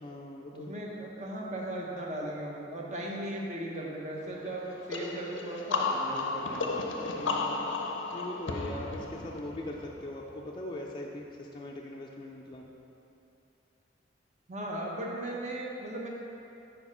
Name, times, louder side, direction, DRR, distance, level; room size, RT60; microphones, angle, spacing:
voice 1, 0.0-0.7 7.2-12.7, left 1 dB, 25° left, -2 dB, 0.4 m, -41 dB
voice 2, 0.5-6.9 14.5-16.1, right 1 dB, 40° right, -2 dB, 1.0 m, -37 dB
sound 1, 4.9-10.5, left 3 dB, 80° left, 0.6 m, -34 dB
7.0 x 4.5 x 5.5 m, 2.8 s
head